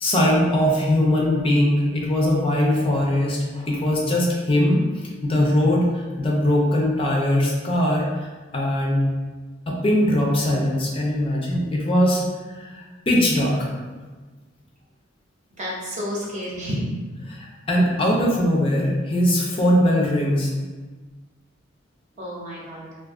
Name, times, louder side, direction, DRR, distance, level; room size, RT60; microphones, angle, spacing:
voice 1, 0.0-4.8 5.2-8.3 8.5-9.0 9.7-12.2 12.5-13.7 17.3-20.5, left 1 dB, 30° left, -2 dB, 0.5 m, -21 dB
voice 2, 15.6-16.8 22.2-22.9, equal, 40° right, -4 dB, 0.7 m, -30 dB
2.5 x 2.4 x 3.5 m, 1.3 s
head